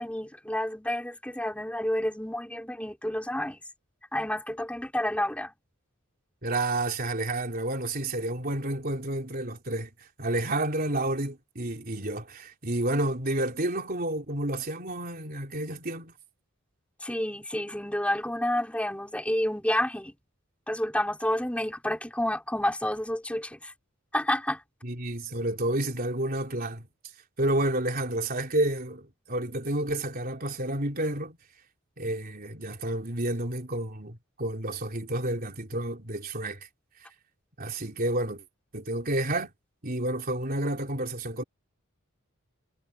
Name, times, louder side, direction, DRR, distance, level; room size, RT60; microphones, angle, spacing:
voice 1, 0.0-3.6 4.1-5.5 17.0-20.1 20.7-23.7 24.1-24.6, left 1 dB, 5° left, 4.7 m, -29 dB
voice 2, 6.4-16.1 24.8-26.8 27.4-31.4 32.0-36.7 37.6-38.4 38.7-39.5 39.8-41.4, right 1 dB, 45° right, 3.5 m, -30 dB
head